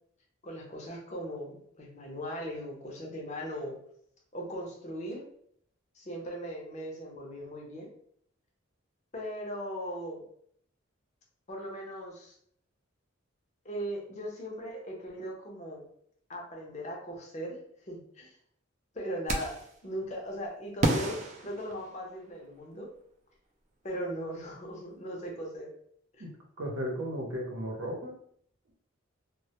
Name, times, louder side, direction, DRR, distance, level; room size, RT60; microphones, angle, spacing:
voice 1, 0.4-3.8 4.3-5.2 5.9-7.9 9.1-10.2 11.5-12.4 13.6-15.9 16.3-18.4 18.9-22.9 23.8-25.7 26.1-26.2, equal, 35° left, 0 dB, 0.6 m, -39 dB
sound 1, 19.3-19.8 20.8-22.3, right 2 dB, 35° right, 0.3 m, -31 dB
voice 2, 26.6-28.1, equal, 80° right, 0 dB, 0.7 m, -35 dB
2.1 x 2.1 x 2.8 m, 0.65 s
head